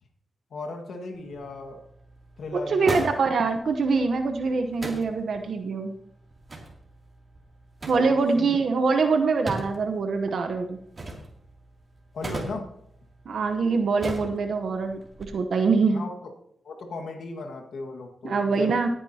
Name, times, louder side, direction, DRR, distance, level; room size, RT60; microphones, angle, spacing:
voice 1, 0.5-1.8 2.4-3.1 8.0-8.5 12.1-12.7 15.9-16.3 16.6-18.9, left 3 dB, 80° left, 2 dB, 1.8 m, -37 dB
sound 1, 1.1-15.2, right 2 dB, 40° right, 2.8 m, -40 dB
voice 2, 2.5-5.9 7.9-10.8 13.3-16.0 18.2-18.9, right 4 dB, 70° right, 5 dB, 1.0 m, -24 dB
18.0 x 9.6 x 2.9 m, 0.70 s
cardioid pair, 60°, 0 cm